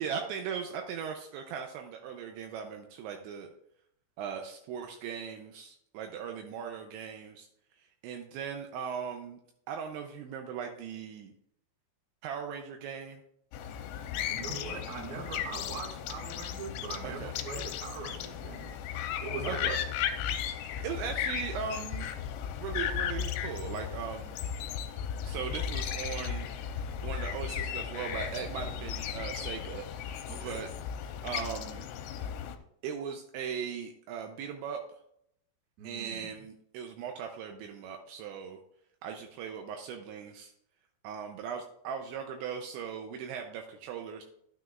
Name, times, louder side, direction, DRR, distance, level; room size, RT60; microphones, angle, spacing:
voice 1, 0.0-3.5 4.2-7.5 7.8-9.4 9.7-11.3 12.2-13.2 17.0-17.3 19.4-19.8 20.8-22.1 22.6-24.4 25.2-26.5 27.0-30.7 31.2-31.9 32.8-34.8 35.8-38.6 39.0-40.5 41.0-44.2, right 7 dB, 80° right, 4 dB, 2.8 m, -38 dB
sound 1, 13.5-32.6, left 8 dB, 85° left, 3.0 m, -36 dB
voice 2, 13.9-18.7 19.2-19.8 30.3-30.6 35.8-36.4, right 5 dB, 50° right, 0 dB, 2.4 m, -41 dB
11.5 x 9.1 x 2.4 m, 0.74 s
omnidirectional pair, 5.5 m